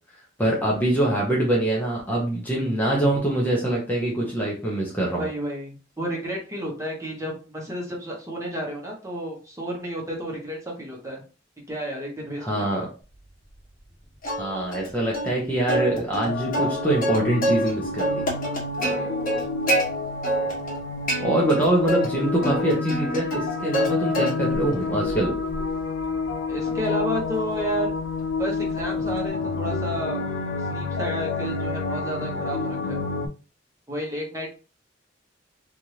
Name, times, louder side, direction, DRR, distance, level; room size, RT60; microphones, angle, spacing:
voice 1, 0.4-5.3 12.4-12.9 14.4-18.2 21.2-25.3, right 1 dB, 10° left, -3 dB, 0.7 m, -24 dB
voice 2, 5.1-11.2 11.7-12.9 18.8-19.1 26.5-27.9 28.4-30.2 30.7-33.0 33.9-34.5, equal, 15° right, -2 dB, 1.0 m, -31 dB
Plucked string instrument, 14.2-14.9 15.1-15.3 15.7-17.7 18.0-19.8 20.2-20.8 21.1-22.1 22.4-23.9 24.1-24.6 25.1-29.3, right 1 dB, 45° left, 1.3 m, -27 dB
sound 1, 16.3-33.3, left 4 dB, 65° left, 0.4 m, -29 dB
3.3 x 2.5 x 2.8 m, 0.34 s
head